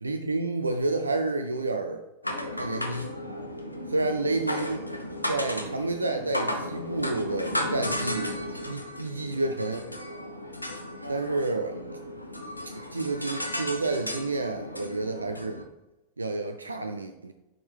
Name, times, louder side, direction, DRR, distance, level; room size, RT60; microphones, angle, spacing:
voice 1, 0.0-2.0 2.6-3.2 3.9-4.9 5.3-8.3 8.7-9.8 11.1-11.8 12.9-15.6 16.2-17.3, right 2 dB, 80° right, 6 dB, 0.4 m, -29 dB
sound 1, 2.2-15.6, left 1 dB, 85° left, 0.6 m, -34 dB
6.2 x 4.4 x 3.4 m, 1.0 s
figure-of-eight pair, 90°, 0 cm